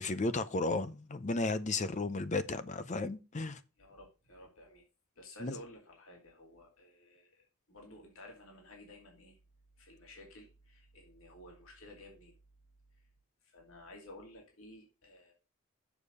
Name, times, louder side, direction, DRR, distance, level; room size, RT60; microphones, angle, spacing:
voice 1, 0.0-3.6 5.4-5.5, left 3 dB, 35° left, 0.6 m, -34 dB
voice 2, 3.8-4.8 5.2-9.4 9.8-12.4 12.9-13.0 13.4-15.3, left 1 dB, 70° left, 2.7 m, -54 dB
7.1 x 6.6 x 5.3 m
head